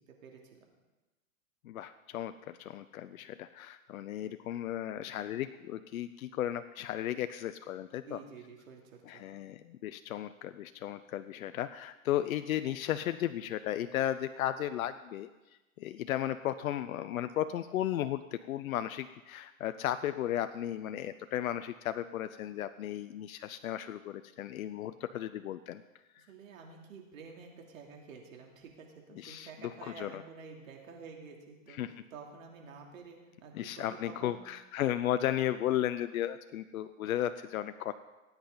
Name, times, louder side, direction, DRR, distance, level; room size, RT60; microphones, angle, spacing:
voice 1, 0.1-0.4 8.0-9.2 26.2-31.8 32.1-34.4, right 5 dB, 75° right, 1 dB, 3.0 m, -50 dB
voice 2, 1.6-8.2 9.1-15.3 15.8-25.8 26.1-26.2 29.2-30.2 31.8-31.9 33.5-37.9, left 12 dB, 80° left, 11 dB, 0.6 m, -35 dB
18.5 x 8.9 x 3.9 m, 1.1 s
hypercardioid pair, 140°, 41 cm